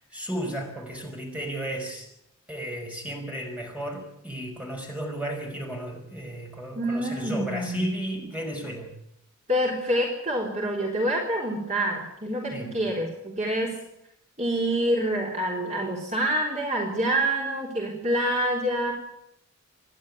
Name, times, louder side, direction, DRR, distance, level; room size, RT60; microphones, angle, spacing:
voice 1, 0.0-2.1 2.5-8.9 12.5-12.7, right 1 dB, 5° right, 1 dB, 5.2 m, -34 dB
voice 2, 6.8-8.0 9.5-13.7 14.4-18.9, right 1 dB, 30° right, -1 dB, 3.7 m, -27 dB
26.5 x 11.5 x 9.7 m, 0.80 s
head